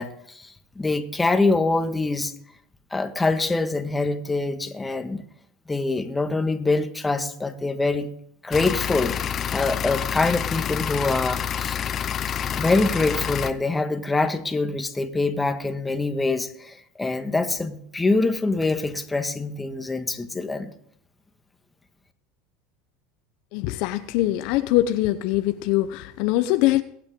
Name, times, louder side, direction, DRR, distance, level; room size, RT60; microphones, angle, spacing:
voice 1, 0.0-2.3 2.9-5.2 5.7-8.1 8.4-9.1 9.5-11.8 12.4-20.7, left 3 dB, 15° left, 7 dB, 1.6 m, -24 dB
narrowboat celestine engine, 8.5-13.5, left 9 dB, 35° left, 0.8 m, -28 dB
voice 2, 23.5-26.8, left 15 dB, 65° left, 11 dB, 0.8 m, -22 dB
22.0 x 8.7 x 3.8 m, 0.67 s
hypercardioid pair, 100°, 0 cm